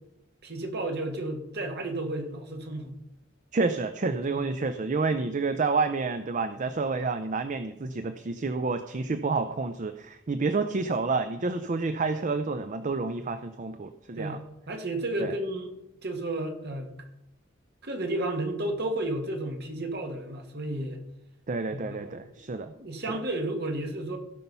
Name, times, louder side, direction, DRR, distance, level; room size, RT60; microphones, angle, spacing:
voice 1, 0.4-3.0 4.3-4.4 14.2-15.7 16.0-16.9 17.8-21.0 21.7-22.3 22.7-24.2, right 1 dB, 55° right, 4 dB, 1.7 m, -32 dB
voice 2, 3.5-14.4 15.2-15.3 21.5-22.7 23.1-23.2, right 3 dB, 40° right, 10 dB, 0.5 m, -29 dB
16.5 x 5.8 x 5.5 m, 0.88 s
head